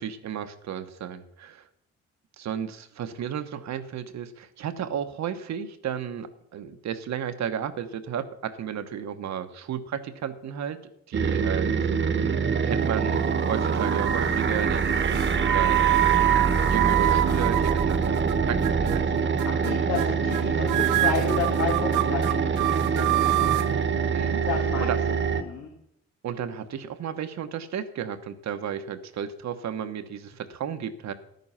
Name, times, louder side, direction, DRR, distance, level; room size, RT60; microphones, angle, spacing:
voice 1, 0.0-1.7 2.4-10.8 11.1-11.7 12.2-12.3 12.6-15.0 15.4-16.0 16.3-19.4 24.1-24.4 24.8-25.0 26.2-31.1, right 8 dB, 65° right, 9 dB, 1.1 m, -33 dB
sound 1, 11.1-25.4, right 6 dB, 40° right, 1.2 m, -25 dB
sound 2, 12.8-13.4 13.8-14.3 15.0-18.3 18.6-19.0 19.4-19.7 20.0-20.1 20.3-20.4 20.7-23.7, right 17 dB, 85° right, 0.6 m, -26 dB
sound 3, 14.1-19.1, right 4 dB, 15° right, 0.6 m, -30 dB
voice 2, 19.5-23.5 24.5-25.7, left 6 dB, 80° left, -1 dB, 2.0 m, -32 dB
11.5 x 9.4 x 5.6 m, 0.77 s
cardioid pair, 90°, 30 cm